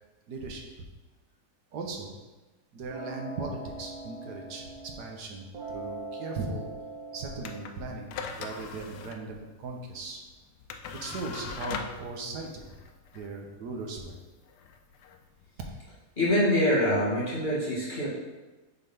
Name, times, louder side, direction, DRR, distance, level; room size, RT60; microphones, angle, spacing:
voice 1, 0.3-0.7 1.7-2.1 2.7-6.7 7.1-10.2 10.9-12.7 13.1-14.2, right 3 dB, 85° right, 2 dB, 1.5 m, -38 dB
sound 1, 2.9-5.2 5.5-7.6, right 2 dB, 65° right, 1.4 m, -41 dB
sound 2, 7.4-15.9, left 5 dB, 90° left, 1.2 m, -42 dB
voice 2, 16.2-18.1, left 1 dB, 30° left, -8 dB, 2.1 m, -25 dB
6.6 x 4.0 x 5.3 m, 1.2 s
omnidirectional pair, 1.7 m